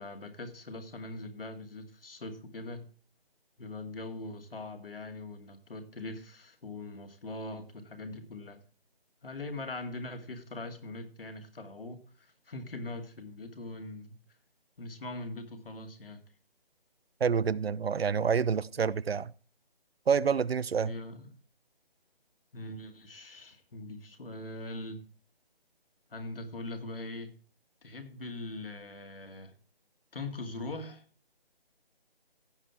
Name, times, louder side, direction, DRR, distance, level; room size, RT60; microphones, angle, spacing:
voice 1, 0.0-2.9 3.6-8.6 9.2-14.2 14.8-16.2 20.8-21.3 22.5-25.0 26.1-27.3 27.8-29.5 30.1-31.0, left 2 dB, 65° left, 2.4 m, -41 dB
voice 2, 17.2-19.3 20.1-20.9, right 6 dB, 85° right, 0.7 m, -27 dB
16.0 x 5.5 x 4.3 m
figure-of-eight pair, 170°, 30 cm